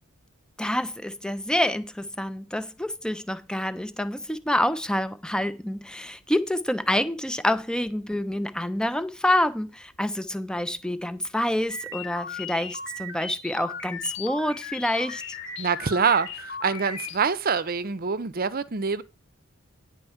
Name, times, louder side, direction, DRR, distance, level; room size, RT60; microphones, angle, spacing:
voice 1, 0.6-15.4, left 1 dB, 5° left, 0.6 m, -27 dB
sound 1, 11.7-17.2, left 4 dB, 55° left, 1.6 m, -37 dB
voice 2, 15.6-19.0, right 5 dB, 45° right, 0.7 m, -25 dB
10.0 x 4.4 x 7.2 m
head